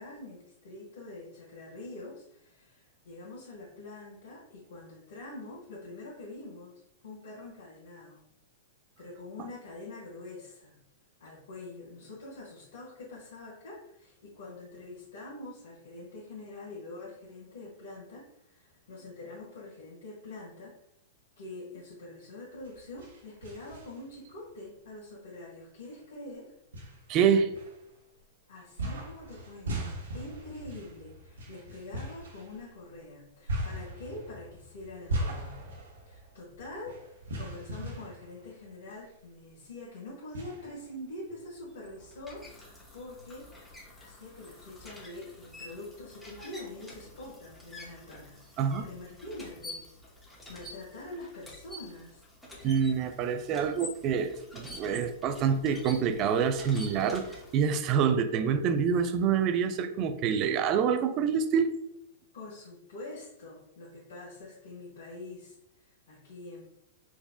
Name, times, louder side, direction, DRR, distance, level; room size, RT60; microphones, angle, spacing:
voice 1, 0.0-8.2 9.0-10.8 11.2-20.8 21.4-26.5 28.5-35.6 36.0-43.5 44.0-49.9 50.5-52.2 62.3-66.6, left 2 dB, 75° left, -7 dB, 1.5 m, -45 dB
sound 1, 22.5-24.3 24.8-24.9 25.8-25.9 26.7-28.2 28.8-39.2 39.5-39.6 40.3-41.4, right 1 dB, 85° right, 1.1 m, -39 dB
voice 2, 27.1-27.5 48.6-48.8 52.6-57.3 57.5-61.8, right 7 dB, 40° right, 9 dB, 0.4 m, -26 dB
sound 2, 41.6-57.8, left 2 dB, 5° left, 1.1 m, -48 dB
4.8 x 2.6 x 2.3 m, 0.78 s
hypercardioid pair, 115°, 0 cm